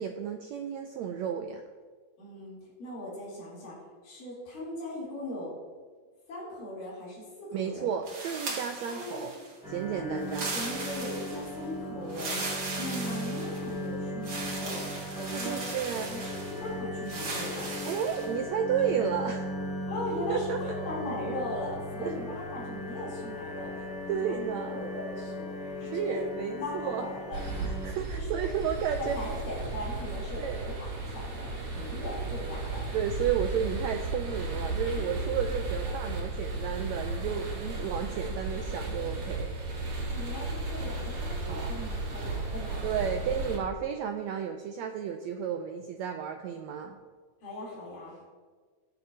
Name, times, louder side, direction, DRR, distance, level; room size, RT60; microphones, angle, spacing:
voice 1, 0.0-1.6 7.5-9.3 9.7-10.5 15.3-16.1 17.8-19.5 20.3-20.6 22.0-22.1 24.1-24.8 25.8-27.1 27.6-29.2 30.4-30.7 32.9-39.6 41.5-41.7 42.8-47.0, right 8 dB, 90° right, 5 dB, 1.5 m, -32 dB
voice 2, 2.2-3.8 4.0-5.5 6.3-7.9 8.8-9.3 9.9-10.2 10.5-15.6 16.0-17.7 19.9-23.7 24.0-25.5 25.8-26.2 26.6-27.4 28.1-28.4 29.0-32.9 34.9-35.0 40.1-42.9 47.4-48.2, left 1 dB, 85° left, -8 dB, 5.1 m, -39 dB
sound 1, 8.1-9.6 10.2-11.6 12.1-13.8 14.2-16.6 17.1-18.3, right 3 dB, 45° right, 2.4 m, -38 dB
sound 2, 9.6-27.9, left 1 dB, ahead, 2.3 m, -38 dB
sound 3, 27.3-43.6, right 3 dB, 65° right, 3.3 m, -34 dB
20.0 x 6.8 x 2.8 m, 1.5 s
omnidirectional pair, 3.8 m